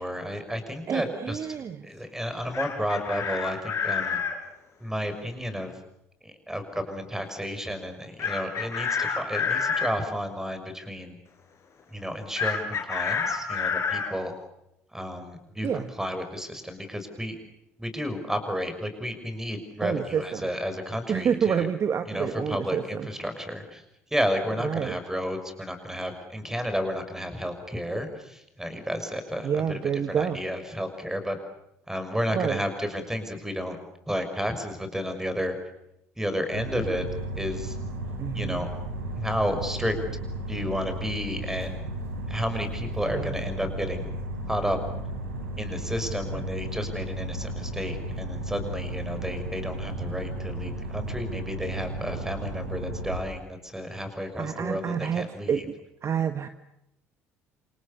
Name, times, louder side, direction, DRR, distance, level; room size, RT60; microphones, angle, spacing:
voice 1, 0.0-1.4 1.8-4.2 4.8-5.7 6.2-11.2 11.9-14.3 14.9-17.4 17.8-21.7 22.1-23.8 24.1-29.8 30.1-31.4 31.9-33.8 34.1-35.5 36.2-37.0 37.4-37.8 38.3-38.7 39.2-39.9 40.5-41.9 42.3-44.1 44.5-44.8 45.6-55.6, equal, 5° right, 8 dB, 6.4 m, -32 dB
voice 2, 0.9-1.9 15.6-15.9 19.8-20.5 21.1-23.1 24.6-25.0 29.4-30.4 32.3-32.6 38.2-38.7 43.1-43.4 46.3-46.5 54.4-55.8 56.0-56.5, right 7 dB, 40° right, 10 dB, 1.4 m, -28 dB
Chicken rooster, 2.3-4.4 8.2-9.9 12.4-14.1, left 6 dB, 40° left, 5.6 m, -28 dB
sound 1, 36.5-53.2, right 1 dB, 80° right, 4.8 m, -34 dB
28.0 x 27.5 x 7.0 m, 0.83 s
figure-of-eight pair, 55°, 7 cm